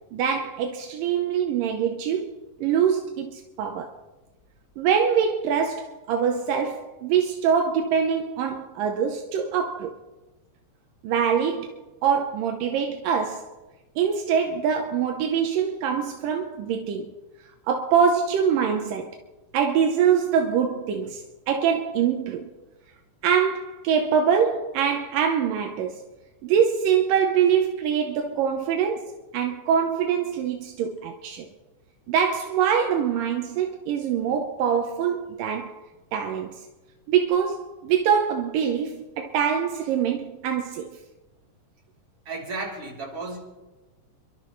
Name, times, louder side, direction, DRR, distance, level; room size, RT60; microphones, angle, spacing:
voice 1, 0.1-2.3 2.6-3.9 4.8-9.9 11.0-11.7 12.0-13.5 14.0-17.1 17.7-19.2 19.5-22.5 23.2-26.0 26.4-31.5 32.1-35.8 36.1-36.6 37.1-40.9, right 7 dB, 85° right, 2.6 m, -24 dB
voice 2, 42.3-43.4, right 3 dB, 45° right, 4.2 m, -33 dB
30.0 x 12.0 x 3.2 m
omnidirectional pair, 3.8 m